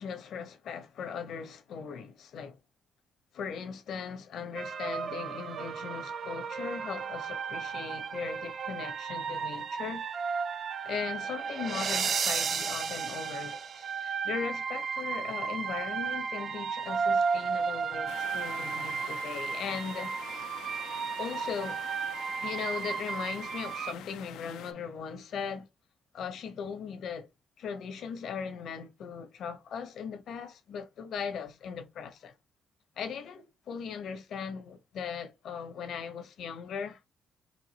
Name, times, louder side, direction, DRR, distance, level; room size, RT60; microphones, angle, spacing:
voice 1, 0.0-2.6 3.3-10.0 10.8-20.5 21.2-21.8 22.4-25.7 26.1-27.3 27.6-32.3 33.0-37.0, left 6 dB, 70° left, 1.1 m, -39 dB
sound 1, 4.5-23.9, right 6 dB, 55° right, 0.5 m, -34 dB
sound 2, 18.1-24.7, left 10 dB, 90° left, 0.4 m, -47 dB
4.8 x 2.7 x 2.9 m
cardioid pair, 90°, 0 cm